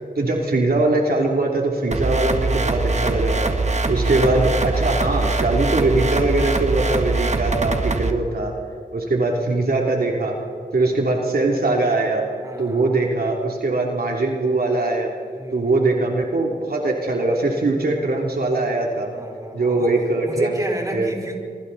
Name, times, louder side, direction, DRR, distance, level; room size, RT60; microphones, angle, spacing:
voice 1, 0.2-3.5 3.9-8.5 8.9-10.3 10.7-12.2 12.6-15.1 15.5-19.1 19.5-20.6 20.9-21.1, right 2 dB, 70° right, 0 dB, 3.1 m, -21 dB
sound 1, 1.9-8.1, right 3 dB, 45° right, 1.7 m, -22 dB
voice 2, 12.4-13.1 15.4-15.7 19.1-20.0 20.3-21.4, right 1 dB, 20° right, 0 dB, 4.5 m, -31 dB
26.0 x 25.0 x 4.2 m, 2.3 s
wide cardioid pair, 65°, 16 cm